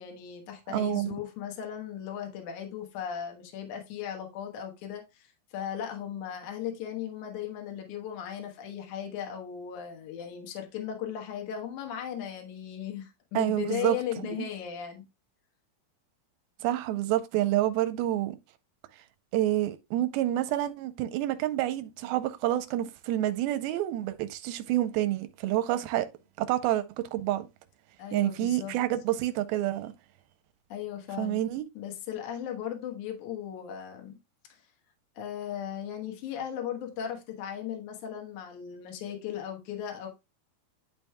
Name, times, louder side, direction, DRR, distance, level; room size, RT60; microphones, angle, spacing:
voice 1, 0.0-15.1 28.0-28.8 30.7-31.4 31.8-34.2 35.2-40.1, left 9 dB, 60° left, 2.4 m, -37 dB
voice 2, 0.7-1.1 13.4-14.0 14.4-14.5 16.6-18.4 19.3-26.1 26.4-27.5 28.1-29.9 31.2-31.7, right 14 dB, 90° right, 2.5 m, -28 dB
11.0 x 5.3 x 2.2 m
omnidirectional pair, 4.3 m